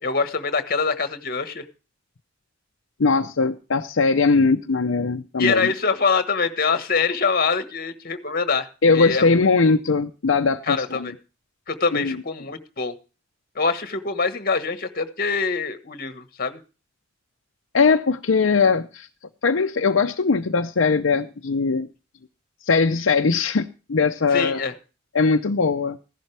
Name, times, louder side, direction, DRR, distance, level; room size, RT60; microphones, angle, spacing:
voice 1, 0.0-1.6 5.4-8.7 8.9-9.5 10.7-11.1 11.7-12.9 13.5-16.6 24.3-24.7, left 4 dB, 50° left, 1.4 m, -24 dB
voice 2, 3.0-5.7 8.8-11.1 11.9-12.2 17.7-19.1 19.4-21.9 22.7-24.6 25.1-26.0, left 4 dB, 75° left, 0.7 m, -20 dB
15.0 x 11.5 x 3.3 m
head